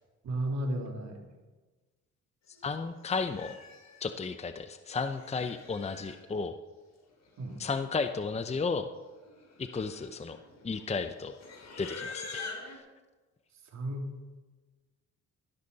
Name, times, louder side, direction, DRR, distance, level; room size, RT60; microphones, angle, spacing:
voice 1, 0.2-1.2 7.4-7.6 13.7-14.1, right 1 dB, 65° right, 2 dB, 3.1 m, -33 dB
Livestock farm animals working animals, 2.6-2.7 3.1-4.1 4.9-6.2 7.3-7.4 7.5-8.0 8.3-8.5 9.2-12.8, left 4 dB, 60° left, 3.7 m, -45 dB
voice 2, 2.6-3.6 4.0-6.5 7.6-8.9 9.6-10.4 10.6-11.3 11.8-12.8, left 4 dB, 20° left, 9 dB, 0.7 m, -33 dB
16.0 x 12.5 x 4.1 m, 1.3 s
cardioid pair, 90°, 30 cm